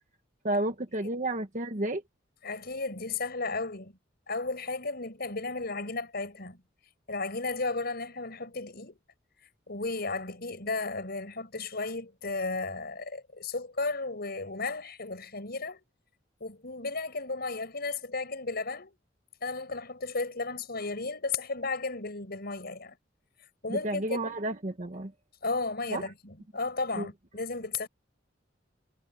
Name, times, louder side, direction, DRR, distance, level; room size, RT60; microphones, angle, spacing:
voice 1, 0.4-2.0 23.7-25.1 25.9-26.1 27.0-27.1, right 1 dB, 40° right, 1.3 m, -31 dB
voice 2, 2.4-3.9 4.3-6.6 7.1-9.0 9.7-15.8 16.4-18.9 19.4-23.0 23.6-24.4 25.4-27.9, left 3 dB, 55° left, 6.1 m, -34 dB
head